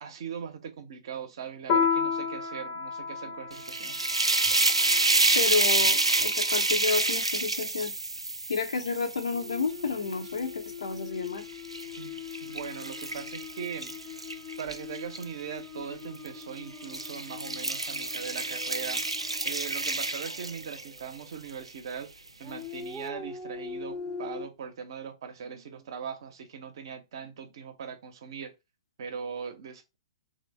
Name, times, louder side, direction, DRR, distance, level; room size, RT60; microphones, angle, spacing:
voice 1, 0.0-4.0 12.0-14.1 14.6-19.2 19.4-22.1 22.4-28.5 29.0-30.0, right 7 dB, 55° right, 0.7 m, -40 dB
Piano, 1.7-6.6, left 6 dB, 35° left, 0.7 m, -32 dB
sound 1, 3.5-10.7 11.3-15.2 16.1-16.4 16.8-21.0, right 2 dB, 85° right, 0.4 m, -28 dB
voice 2, 5.3-7.9 8.5-11.4, left 5 dB, 70° left, 0.8 m, -30 dB
sound 2, 9.3-21.3 22.4-24.5, left 6 dB, 5° left, 0.6 m, -43 dB
3.3 x 2.1 x 3.2 m
figure-of-eight pair, 115°, 3 cm